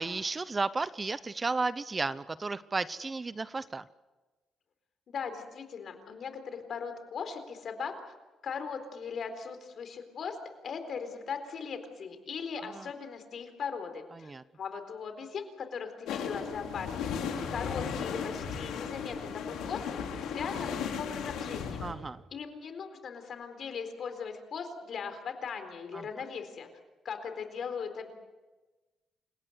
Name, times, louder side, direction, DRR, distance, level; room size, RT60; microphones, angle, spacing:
voice 1, 0.0-3.8 12.8-12.9 14.2-14.4 21.8-22.2 25.9-26.0, right 3 dB, 25° right, 16 dB, 0.7 m, -33 dB
voice 2, 5.1-7.9 8.4-10.4 10.6-14.3 14.6-19.8 20.2-21.8 22.3-26.7 27.0-28.1, left 6 dB, 55° left, 8 dB, 4.1 m, -39 dB
sound 1, 16.1-21.9, left 6 dB, 85° left, 3.7 m, -35 dB
29.0 x 17.0 x 8.1 m, 1.2 s
cardioid pair, 90°, 0 cm